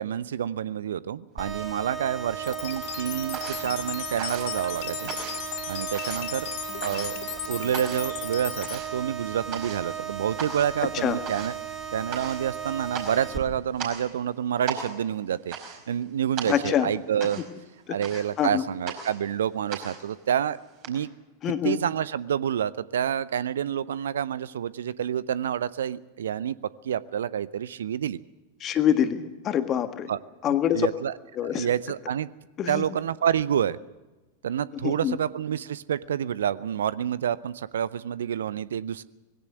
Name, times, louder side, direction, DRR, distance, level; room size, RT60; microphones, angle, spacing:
voice 1, 0.0-5.1 5.7-6.5 6.8-7.2 7.5-11.5 11.9-17.4 17.9-20.6 20.9-21.1 21.6-26.6 26.8-28.2 30.1-30.2 30.5-31.1 31.4-32.3 32.7-33.8 34.4-39.0, right 9 dB, 65° right, 19 dB, 0.6 m, -28 dB
sound 1, 1.4-13.4, right 7 dB, 10° right, 3.5 m, -36 dB
sound 2, 1.5-2.3 2.6-20.9, right 7 dB, 40° right, 5.0 m, -39 dB
sound 3, 2.4-8.8, left 10 dB, 50° left, 3.1 m, -36 dB
voice 2, 16.5-16.9 17.9-18.0 18.4-18.6 21.4-21.8 28.6-30.1 30.4-30.9 31.4-31.7 32.6-32.8 34.8-35.2, left 10 dB, 30° left, 9 dB, 1.7 m, -25 dB
20.0 x 17.0 x 7.9 m, 1.1 s
figure-of-eight pair, 90°, 0 cm